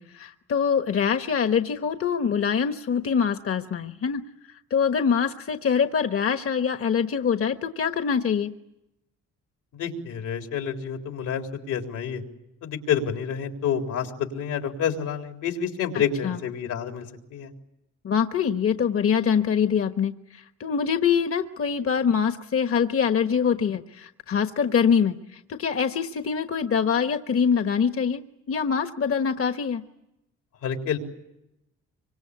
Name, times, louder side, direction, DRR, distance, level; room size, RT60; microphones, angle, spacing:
voice 1, 0.0-4.2 4.7-8.5 16.2-16.4 18.0-28.2 28.5-29.8, left 7 dB, 50° left, 8 dB, 1.3 m, -24 dB
voice 2, 9.7-12.2 12.6-17.5 30.6-31.0, left 7 dB, 85° left, 4 dB, 4.0 m, -28 dB
25.5 x 25.0 x 8.5 m, 0.89 s
cardioid pair, 90°, 30 cm